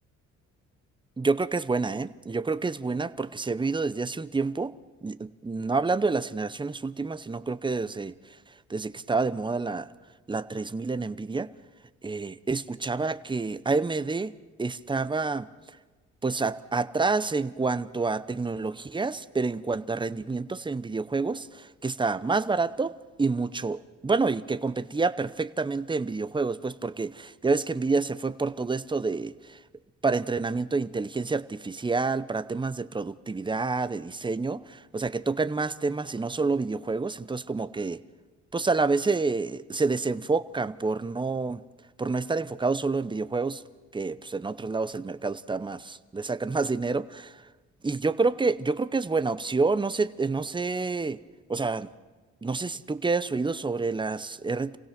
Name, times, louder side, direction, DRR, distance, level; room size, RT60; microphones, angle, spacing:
voice 1, 1.2-4.7 5.0-8.1 8.7-9.9 10.3-11.5 12.0-14.3 14.6-15.5 16.2-22.9 23.2-29.6 30.0-38.0 38.5-41.6 42.0-43.6 43.9-47.4 47.8-51.2 51.5-51.9 52.4-54.8, right 4 dB, 15° right, 14 dB, 0.8 m, -28 dB
27.0 x 17.0 x 6.0 m, 1.3 s
cardioid pair, 90°, 30 cm